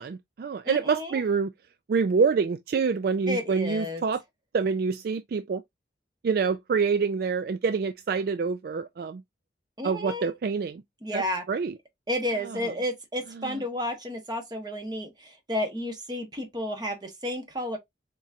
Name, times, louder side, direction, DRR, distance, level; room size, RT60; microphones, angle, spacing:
voice 1, 0.0-1.5 1.9-4.2 4.5-5.6 6.2-9.2 9.8-10.8 11.1-11.8 12.4-12.6 13.4-13.6, right 5 dB, 55° right, 0.3 m, -26 dB
voice 2, 0.6-1.2 3.3-4.0 9.8-10.3 11.0-11.4 12.1-17.8, left 1 dB, 25° right, 1.3 m, -31 dB
4.2 x 3.7 x 2.7 m
head